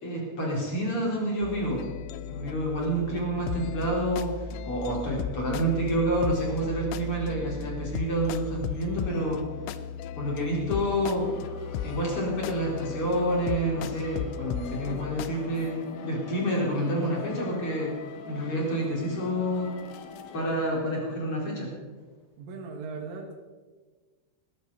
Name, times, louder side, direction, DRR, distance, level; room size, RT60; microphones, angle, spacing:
voice 1, 0.0-1.9 2.2-9.4 10.1-11.3 11.8-17.9 18.3-19.7 20.3-21.7, right 1 dB, 30° left, -3 dB, 4.8 m, -28 dB
sound 1, 1.4-15.3, left 7 dB, 85° left, 3.2 m, -36 dB
sound 2, 11.2-20.7, left 4 dB, 65° left, 2.4 m, -42 dB
voice 2, 22.4-23.4, right 4 dB, 80° right, 1 dB, 4.2 m, -38 dB
19.0 x 15.5 x 4.2 m, 1.4 s
omnidirectional pair, 5.7 m